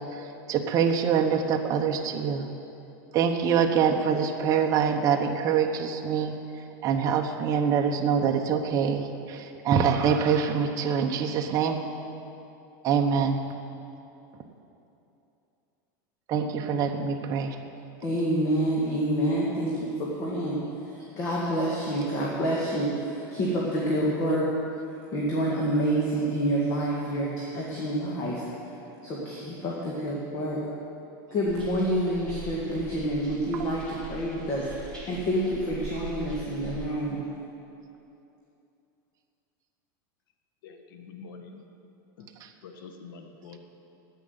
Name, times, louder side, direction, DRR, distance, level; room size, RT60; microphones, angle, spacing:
voice 1, 0.0-2.5 3.1-6.4 6.8-11.9 12.8-13.5 16.3-17.6 33.5-33.7 42.4-42.5, right 7 dB, 30° right, 3 dB, 1.0 m, -25 dB
voice 2, 18.0-20.6 21.1-24.5 25.1-28.4 29.0-30.6 31.3-34.7 35.1-37.2, right 1 dB, 35° left, -4 dB, 1.9 m, -27 dB
sound 1, 31.4-36.9, right 2 dB, 10° left, 2.7 m, -42 dB
voice 3, 40.6-41.6 42.2-42.3 42.6-43.6, left 5 dB, 90° left, 5 dB, 1.4 m, -45 dB
10.0 x 8.9 x 9.8 m, 2.8 s
supercardioid pair, 160°, 11 cm